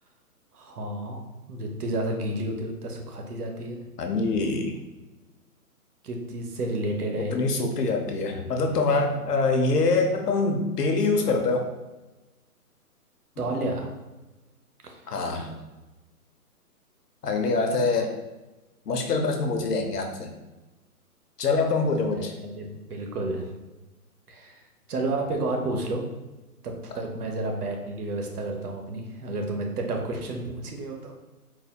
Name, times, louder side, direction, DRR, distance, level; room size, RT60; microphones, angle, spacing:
voice 1, 0.5-1.2 1.5-3.8 6.0-7.4 13.4-13.9 14.8-15.0 22.1-23.5 24.3-24.6 24.9-26.1 26.6-31.1, right 2 dB, 70° right, 2 dB, 0.8 m, -31 dB
voice 2, 4.0-4.7 7.3-11.7 13.4-13.5 15.1-15.6 17.2-18.1 18.9-20.3 21.4-22.4, left 3 dB, 80° left, 4 dB, 0.8 m, -24 dB
4.0 x 2.8 x 2.2 m, 1.1 s
hypercardioid pair, 150°, 46 cm